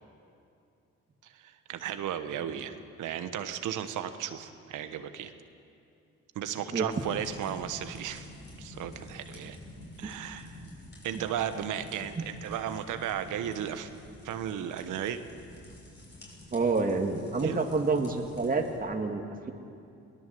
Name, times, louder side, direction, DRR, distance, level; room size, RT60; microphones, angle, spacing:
voice 1, 1.2-5.3 6.3-8.3 8.6-9.6 10.0-10.6 11.0-13.9 14.2-15.2 17.4-17.6, right 9 dB, 85° right, 9 dB, 1.3 m, -35 dB
sound 1, 6.9-18.8, left 1 dB, 35° left, 6.8 m, -49 dB
voice 2, 16.5-19.5, right 3 dB, 30° right, 3 dB, 2.0 m, -28 dB
22.5 x 18.5 x 7.7 m, 2.6 s
cardioid pair, 90°, 30 cm